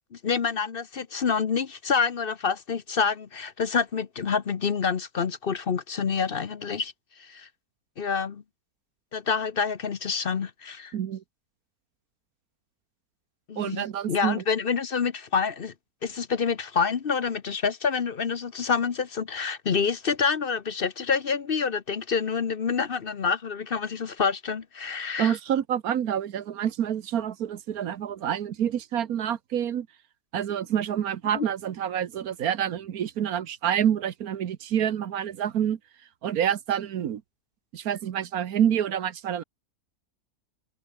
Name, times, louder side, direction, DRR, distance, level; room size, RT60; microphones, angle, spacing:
voice 1, 0.1-6.9 7.2-7.5 8.0-8.4 9.1-10.9 13.5-15.7 16.0-25.4 31.4-31.5, left 6 dB, 45° left, 0.9 m, -27 dB
voice 2, 10.9-11.2 13.6-14.4 25.2-29.9 30.3-35.8 36.2-37.2 37.7-39.4, right 9 dB, 75° right, 1.4 m, -27 dB
omnidirectional pair, 1.6 m